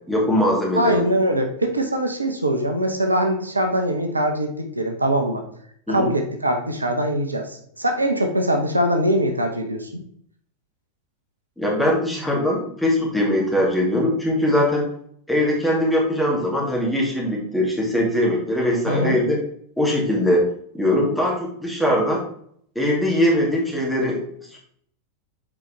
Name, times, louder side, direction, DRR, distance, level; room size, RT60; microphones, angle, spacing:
voice 1, 0.1-1.1 5.9-6.1 11.6-14.9 15.3-19.4 19.8-20.4 20.7-22.2 22.8-24.2 24.5-24.6, left 1 dB, 5° left, -3 dB, 2.3 m, -21 dB
voice 2, 0.7-5.4 5.9-10.0 18.9-19.2, right 1 dB, 80° right, 4 dB, 0.9 m, -22 dB
7.4 x 4.6 x 3.4 m, 0.66 s
figure-of-eight pair, 90°, 0 cm